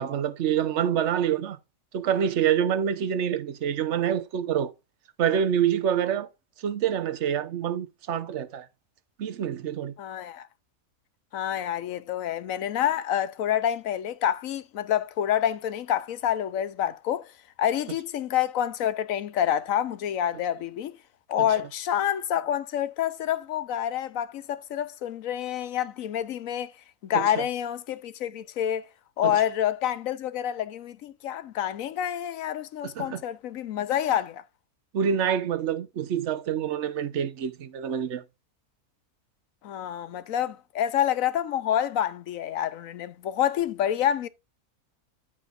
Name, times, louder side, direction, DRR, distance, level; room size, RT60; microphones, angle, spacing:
voice 1, 0.0-1.6 1.9-4.7 5.2-6.3 6.6-8.7 9.2-9.9 27.1-27.4 29.2-29.4 32.8-33.2 34.9-38.2, right 9 dB, 55° right, 1.1 m, -26 dB
voice 2, 10.0-10.5 11.3-17.3 17.6-21.0 21.3-26.7 27.0-28.9 29.2-34.4 39.6-44.3, left 10 dB, 65° left, 1.1 m, -28 dB
13.5 x 5.0 x 2.5 m
omnidirectional pair, 1.6 m